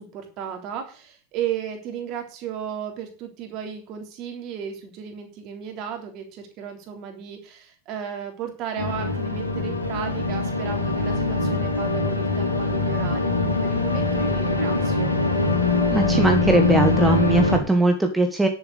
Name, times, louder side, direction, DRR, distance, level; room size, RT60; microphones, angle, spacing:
voice 1, 0.0-15.1, right 8 dB, 40° right, 3 dB, 3.5 m, -34 dB
sound 1, 8.8-17.6, left 3 dB, 85° left, 3.1 m, -23 dB
voice 2, 15.9-18.5, right 2 dB, 5° right, 5 dB, 1.4 m, -20 dB
10.5 x 7.4 x 6.9 m, 0.39 s
figure-of-eight pair, 90°, 0 cm